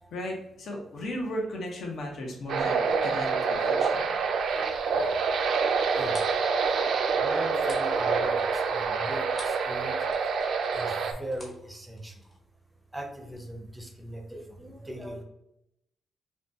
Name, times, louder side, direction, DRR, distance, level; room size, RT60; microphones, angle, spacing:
voice 1, 0.1-4.1, equal, 55° left, 0 dB, 1.0 m, -36 dB
sound 1, 2.5-11.1, right 5 dB, 65° right, 0.5 m, -26 dB
sound 2, 5.7-9.7 10.0-12.4, left 1 dB, 25° left, 1.1 m, -48 dB
voice 2, 5.9-6.3 6.7-6.8 7.1-10.0 10.7-12.1 12.9-15.2, right 1 dB, 10° right, 2 dB, 0.7 m, -39 dB
5.7 x 2.3 x 2.7 m, 0.84 s
cardioid pair, 150°, 0 cm